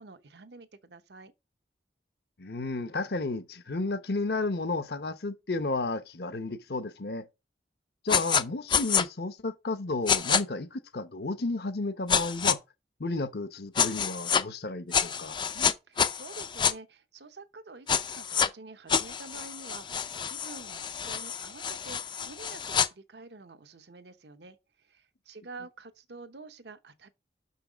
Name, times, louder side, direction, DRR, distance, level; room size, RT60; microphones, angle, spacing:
voice 1, 0.0-1.3 15.5-24.6 24.8-27.1, right 3 dB, 70° right, 0.9 m, -48 dB
voice 2, 2.4-7.2 8.0-12.6 13.0-15.4, left 2 dB, 65° left, 0.9 m, -32 dB
sound 1, 8.1-8.4 8.7-9.0 10.1-10.4 12.1-12.6 13.8-14.4 14.9-16.7 17.9-18.5 18.9-22.9, left 7 dB, 25° left, 0.4 m, -27 dB
6.3 x 5.5 x 5.0 m
head